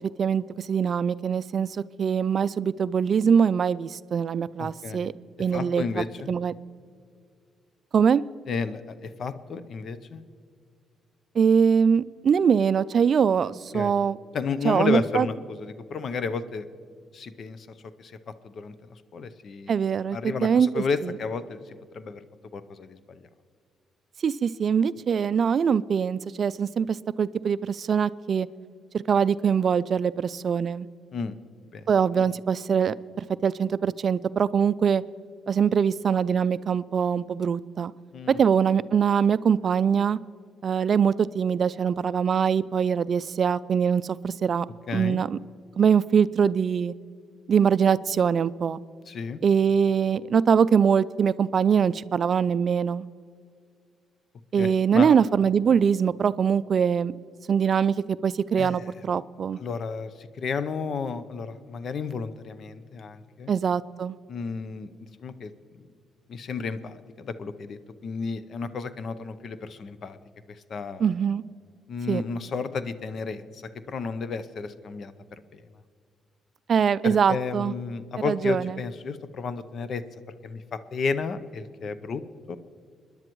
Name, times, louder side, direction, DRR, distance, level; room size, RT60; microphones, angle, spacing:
voice 1, 0.2-5.1 5.4-6.5 7.9-8.2 11.3-14.2 14.6-15.3 19.7-21.1 24.2-28.5 28.9-30.9 31.9-35.0 35.5-37.9 38.3-40.2 40.6-44.7 44.9-45.4 45.8-46.9 47.5-48.8 49.4-53.1 54.5-57.1 57.5-59.6 63.5-64.2 71.0-71.4 72.1-72.2 76.7-77.7 78.2-78.7, right 7 dB, 50° right, 17 dB, 0.3 m, -23 dB
voice 2, 4.6-5.1 5.4-6.3 8.5-10.2 13.7-14.0 14.3-16.7 17.1-17.7 18.0-19.8 20.1-22.2 22.5-23.2 31.1-31.4 31.7-31.8 32.2-32.3 38.1-38.4 44.9-45.2 49.1-49.4 54.6-55.1 58.6-58.9 59.6-63.5 64.3-65.8 66.3-70.2 70.5-71.1 71.9-73.6 73.9-75.6 77.0-80.0 80.4-82.2 82.5-82.6, left 5 dB, 55° left, 13 dB, 0.7 m, -32 dB
26.5 x 10.5 x 3.1 m, 2.2 s
cardioid pair, 90°, 0 cm